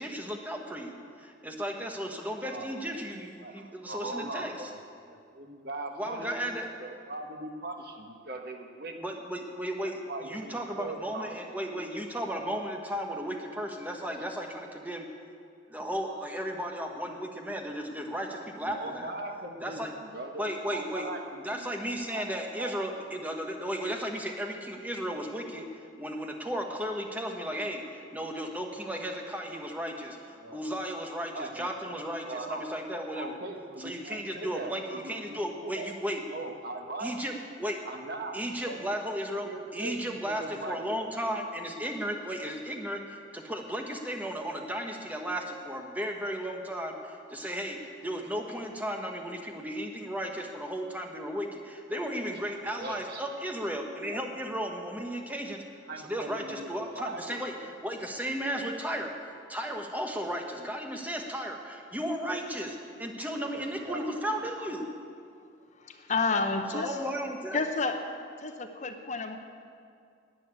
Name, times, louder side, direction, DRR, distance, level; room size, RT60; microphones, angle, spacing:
voice 1, 0.0-4.7 5.9-6.7 9.0-15.1 15.7-19.1 19.6-19.9 20.4-21.1 21.4-25.7 26.0-33.4 33.8-36.2 37.0-37.3 37.6-37.8 38.3-55.6 56.0-64.9 66.7-67.6, equal, 10° right, 2 dB, 1.2 m, -35 dB
voice 2, 3.4-4.7 5.1-8.9 9.8-11.4 16.1-16.3 18.6-21.7 22.1-22.3 22.6-22.7 30.4-30.6 31.3-32.6 33.1-35.9 36.3-37.1 37.8-38.4 38.6-38.8 39.4-40.8 52.8-53.3 54.1-54.3 55.3-55.4 55.9-56.7 56.9-57.7 63.4-64.7 66.7-66.9, right 2 dB, 55° right, 4 dB, 1.2 m, -40 dB
voice 3, 65.8-67.0 67.5-68.0 68.4-69.4, left 4 dB, 40° left, 6 dB, 0.8 m, -30 dB
11.5 x 9.0 x 8.8 m, 2.3 s
head